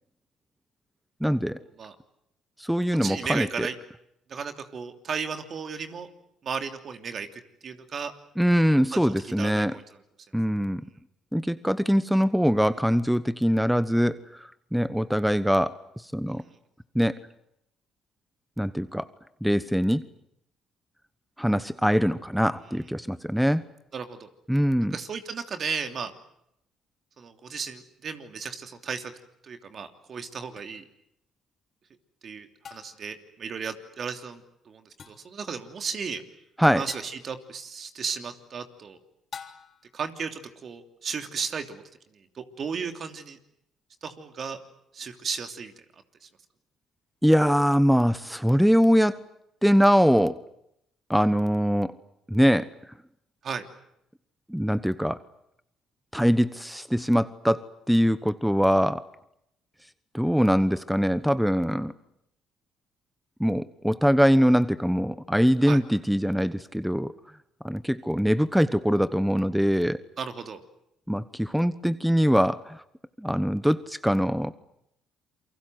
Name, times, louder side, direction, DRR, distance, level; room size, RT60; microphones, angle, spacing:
voice 1, 1.2-1.6 2.6-3.7 8.4-9.7 10.3-10.8 11.3-16.4 16.9-17.2 18.6-19.1 19.4-20.0 21.4-23.6 24.5-25.0 36.6-36.8 47.2-49.2 49.6-50.4 51.1-51.9 52.3-52.7 54.5-55.2 56.1-59.0 60.1-61.9 63.4-67.1 67.6-70.0 71.1-72.8 73.2-74.5, equal, ahead, 14 dB, 1.0 m, -23 dB
voice 2, 3.0-3.7 4.3-6.1 6.4-8.1 8.9-9.8 16.3-16.6 23.9-24.3 24.8-26.1 27.2-29.1 29.4-30.8 32.2-36.2 36.8-39.0 39.9-41.8 42.1-43.4 44.0-44.6 44.9-45.7 46.2-46.3 53.4-53.7 65.6-65.8 70.2-70.6, right 6 dB, 50° right, 6 dB, 3.0 m, -35 dB
sound 1, 30.6-30.7 32.6-33.1 35.0-35.4 36.9-37.3 39.3-39.9, left 6 dB, 50° left, 3.2 m, -44 dB
28.5 x 23.5 x 7.9 m, 0.79 s
supercardioid pair, 65°, 0 cm